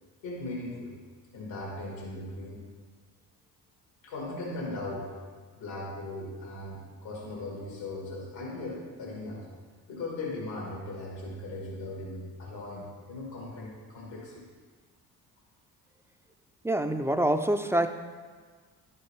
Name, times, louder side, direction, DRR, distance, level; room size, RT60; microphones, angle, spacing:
voice 1, 0.2-0.9 1.3-2.7 4.0-5.1 5.6-9.5 9.9-14.5, left 2 dB, 80° left, -3 dB, 2.0 m, -38 dB
voice 2, 16.6-17.9, right 1 dB, 5° right, 7 dB, 0.4 m, -26 dB
11.0 x 4.6 x 3.2 m, 1.5 s
hypercardioid pair, 50°, 45 cm